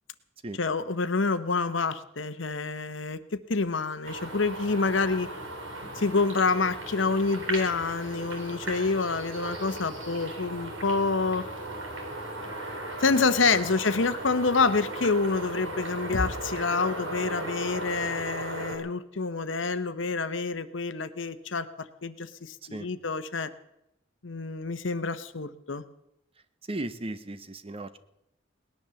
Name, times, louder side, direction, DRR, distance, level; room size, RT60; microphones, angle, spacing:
voice 1, 0.6-5.3 5.9-11.4 13.0-23.5 24.2-25.8, left 4 dB, 70° left, 12 dB, 1.0 m, -27 dB
sound 1, 4.0-18.8, right 1 dB, 85° right, 4.7 m, -37 dB
voice 2, 26.6-28.0, right 1 dB, 30° right, 12 dB, 0.9 m, -36 dB
19.0 x 10.5 x 7.0 m, 0.84 s
head